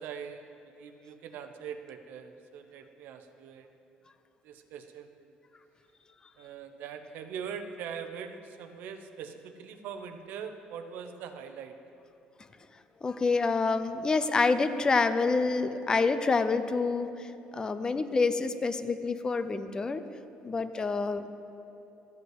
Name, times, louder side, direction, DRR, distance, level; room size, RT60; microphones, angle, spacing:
voice 1, 0.0-3.7 4.4-5.1 6.4-11.8, right 7 dB, 70° right, 8 dB, 0.8 m, -42 dB
voice 2, 13.0-17.3 17.5-20.0 20.4-21.3, left 4 dB, 25° left, 11 dB, 0.5 m, -27 dB
13.0 x 5.4 x 8.0 m, 2.9 s
cardioid pair, 125°, 3 cm